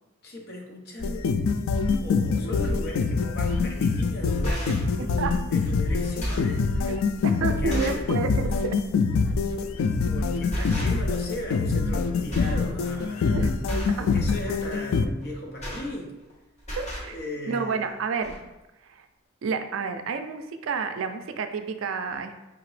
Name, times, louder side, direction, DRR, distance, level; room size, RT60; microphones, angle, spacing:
voice 1, 0.2-1.3 2.0-7.1 7.4-8.1 9.5-16.1 17.1-18.0, left 1 dB, 50° left, 1 dB, 0.8 m, -37 dB
sound 1, 1.0-15.1, left 4 dB, 80° left, 0.3 m, -25 dB
sound 2, 3.5-3.7 4.2-4.9 5.6-5.7 6.0-6.6 7.2-7.3 7.7-8.1 8.5-8.7 9.8-10.1 10.5-11.2 11.5-12.0 12.3-12.6 12.9-13.2 13.6-14.0 15.2-16.3 16.6-17.1 17.9-18.0 18.2-18.4, equal, 35° left, 1.3 m, -32 dB
voice 2, 4.7-5.4 7.2-8.8 10.6-10.7 13.3-13.5 14.0-14.1 16.8-17.2 17.5-18.4 18.8-19.1 19.4-22.4, right 5 dB, 75° right, 8 dB, 0.4 m, -30 dB
4.9 x 2.9 x 3.1 m, 1.0 s
head